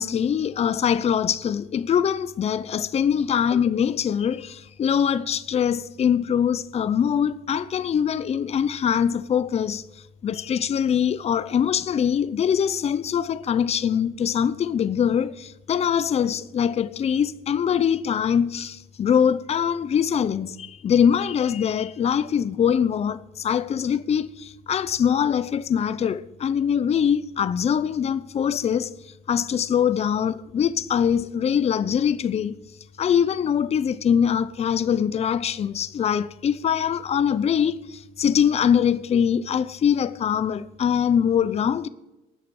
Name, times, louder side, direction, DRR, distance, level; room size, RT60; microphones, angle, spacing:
voice 1, 0.0-9.8 10.2-28.9 29.3-32.6 33.0-41.9, left 8 dB, 40° left, 0.7 m, -23 dB
13.5 x 8.9 x 7.8 m
cardioid pair, 110°, 17 cm